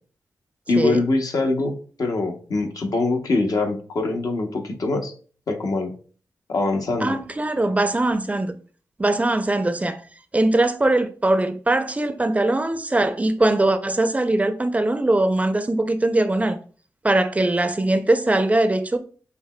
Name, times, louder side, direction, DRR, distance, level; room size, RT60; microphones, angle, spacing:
voice 1, 0.7-5.1 5.5-5.9 6.5-7.2, left 3 dB, 65° left, 0.8 m, -23 dB
voice 2, 7.0-8.6 9.0-10.0 10.3-16.6 17.0-19.0, right 2 dB, 20° right, 0.4 m, -21 dB
6.5 x 2.9 x 2.2 m
cardioid pair, 80°, 7 cm